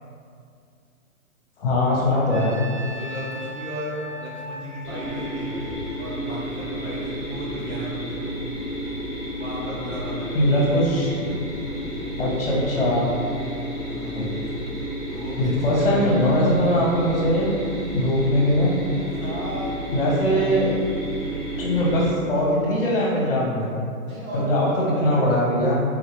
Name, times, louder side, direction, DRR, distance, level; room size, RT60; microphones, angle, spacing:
voice 1, 1.6-2.6 10.3-11.3 12.2-13.1 14.1-14.3 15.4-17.5 17.9-18.7 19.9-20.8 21.6-23.7 24.3-25.8, left 1 dB, 40° left, -5 dB, 0.7 m, -21 dB
Trumpet, 2.3-6.5, equal, 50° right, 0.9 m, -39 dB
voice 2, 2.8-5.6 6.0-8.6 9.4-10.4 13.9-14.3 15.1-16.5 19.1-19.8 21.0-21.3 24.0-25.3, equal, 70° right, -7 dB, 1.4 m, -35 dB
sound 1, 4.8-22.1, equal, 5° left, 0.8 m, -31 dB
3.6 x 2.3 x 3.1 m, 2.3 s
hypercardioid pair, 160°, 43 cm